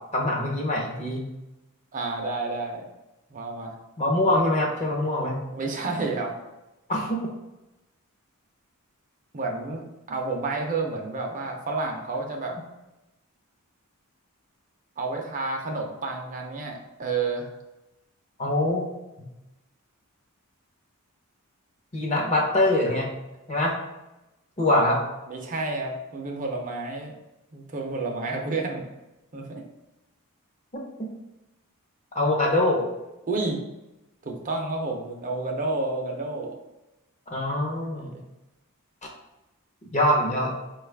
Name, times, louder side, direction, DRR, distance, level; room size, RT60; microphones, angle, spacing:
voice 1, 0.1-1.3 4.0-5.4 6.9-7.3 18.4-18.8 19.2-19.3 21.9-23.1 23.5-23.7 24.6-25.0 30.7-31.1 32.1-32.9 37.3-38.1 39.9-40.6, left 1 dB, 30° left, -1 dB, 0.8 m, -24 dB
voice 2, 1.9-2.9 3.3-3.8 5.5-6.3 9.3-12.6 15.0-17.5 25.3-27.1 27.5-28.8 29.3-29.6 33.3-33.6 34.2-36.5 38.0-38.2, right 3 dB, 35° right, 1 dB, 0.5 m, -30 dB
4.6 x 2.3 x 3.3 m, 0.98 s
head